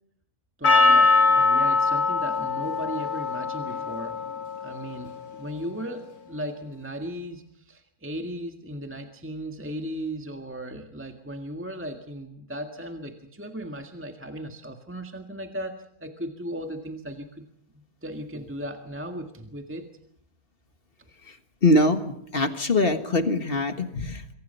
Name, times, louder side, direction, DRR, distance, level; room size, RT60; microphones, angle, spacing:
Percussion, 0.6-5.2, left 3 dB, 75° left, 2.6 m, -22 dB
voice 1, 0.6-4.2 4.6-17.5 17.7-19.9, equal, 10° right, 4 dB, 1.7 m, -36 dB
voice 2, 21.2-24.3, left 2 dB, 40° left, 8 dB, 1.7 m, -23 dB
27.5 x 23.5 x 5.6 m, 0.67 s
omnidirectional pair, 1.6 m